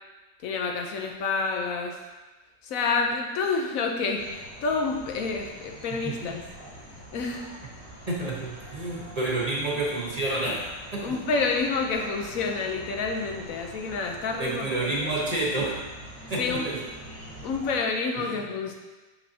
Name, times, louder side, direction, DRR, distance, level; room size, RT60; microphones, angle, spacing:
voice 1, 0.4-2.0 2.6-6.4 7.1-7.5 11.0-15.1 16.4-16.7 17.4-18.7, left 4 dB, 90° left, 2 dB, 1.2 m, -28 dB
sound 1, 4.2-17.8, equal, 10° left, 1.0 m, -45 dB
voice 2, 6.0-6.4 8.1-11.2 14.4-15.8 16.3-16.8 18.2-18.4, right 2 dB, 30° right, -4 dB, 1.0 m, -29 dB
6.2 x 5.8 x 2.8 m, 1.2 s
omnidirectional pair, 1.4 m